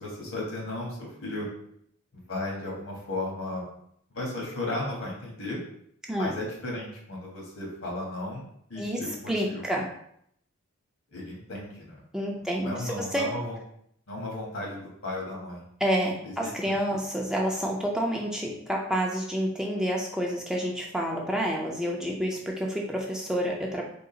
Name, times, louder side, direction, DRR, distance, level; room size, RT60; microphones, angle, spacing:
voice 1, 0.0-1.5 2.1-3.7 4.1-5.6 6.1-8.4 8.7-9.6 11.1-12.0 12.5-13.6 14.1-15.6 16.2-17.0, left 2 dB, 80° left, -2 dB, 1.4 m, -35 dB
voice 2, 9.3-9.8 12.1-13.2 15.8-23.8, equal, 5° right, -1 dB, 0.4 m, -29 dB
3.7 x 2.4 x 3.8 m, 0.69 s
head